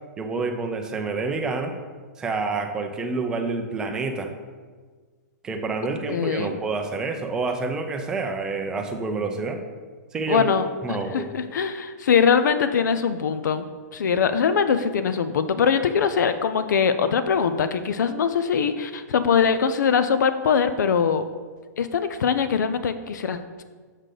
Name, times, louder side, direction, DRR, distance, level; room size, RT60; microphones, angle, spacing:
voice 1, 0.2-1.7 2.2-4.3 5.4-9.6 10.1-10.5 10.8-11.3, right 3 dB, 5° right, 4 dB, 0.4 m, -28 dB
voice 2, 6.1-6.6 10.3-13.7 13.9-21.3 21.8-23.6, left 6 dB, 85° left, 10 dB, 0.5 m, -22 dB
6.5 x 6.5 x 3.8 m, 1.5 s
hypercardioid pair, 175°, 9 cm